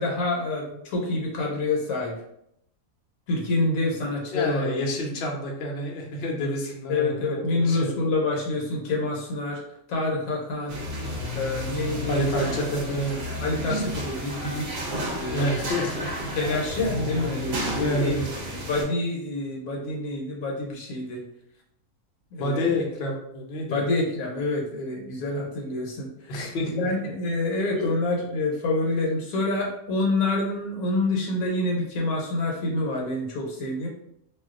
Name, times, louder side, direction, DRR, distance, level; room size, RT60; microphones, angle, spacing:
voice 1, 0.0-2.1 3.3-4.8 6.9-9.6 9.9-10.8 11.3-12.5 13.4-14.8 15.1-15.6 16.3-18.2 18.7-21.2 22.3-22.8 23.7-26.3 26.7-33.9, left 2 dB, 70° left, -1 dB, 1.1 m, -27 dB
voice 2, 4.3-8.0 12.1-13.2 13.7-13.8 15.3-16.3 17.7-18.3 22.4-23.8 26.3-26.9 27.7-27.9, left 1 dB, 55° left, 0 dB, 0.7 m, -28 dB
sound 1, 10.7-18.8, equal, 55° right, 0.9 m, -31 dB
2.5 x 2.3 x 3.6 m, 0.77 s
omnidirectional pair, 1.6 m